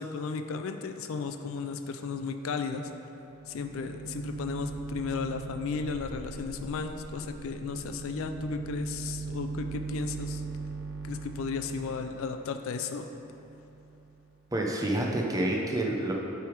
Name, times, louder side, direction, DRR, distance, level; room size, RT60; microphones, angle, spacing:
voice 1, 0.0-2.9 3.5-10.4 11.0-13.1, left 5 dB, 70° left, 7 dB, 0.4 m, -34 dB
sound 1, 3.1-14.3, right 4 dB, 65° right, 0.6 m, -41 dB
sound 2, 4.5-10.7, equal, ahead, 1.3 m, -49 dB
voice 2, 14.5-16.2, right 1 dB, 15° right, 0 dB, 0.5 m, -28 dB
8.1 x 3.4 x 4.5 m, 2.8 s
head